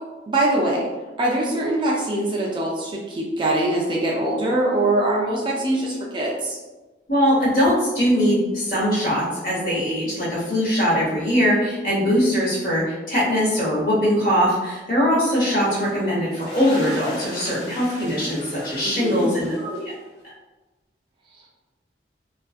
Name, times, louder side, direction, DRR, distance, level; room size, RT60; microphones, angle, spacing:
voice 1, 0.3-0.8 1.2-6.6 18.9-19.3, right 1 dB, 25° right, -3 dB, 0.4 m, -23 dB
voice 2, 7.1-19.9, equal, 50° left, -7 dB, 1.1 m, -21 dB
sound 1, 15.6-20.2, equal, 30° left, 1.3 m, -38 dB
2.5 x 2.3 x 2.4 m, 1.2 s
head